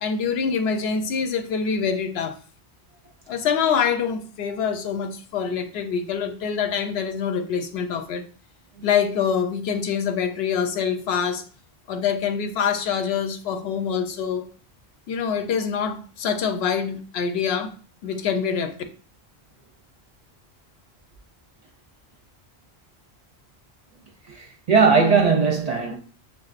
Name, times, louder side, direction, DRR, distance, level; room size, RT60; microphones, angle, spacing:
voice 1, 0.0-2.4 3.3-8.2 8.8-11.4 11.9-14.5 15.1-17.7 18.0-18.8, left 6 dB, 80° left, 0.8 m, -25 dB
voice 2, 24.3-26.0, right 5 dB, 50° right, 0.5 m, -19 dB
5.9 x 2.4 x 2.4 m
omnidirectional pair, 1.1 m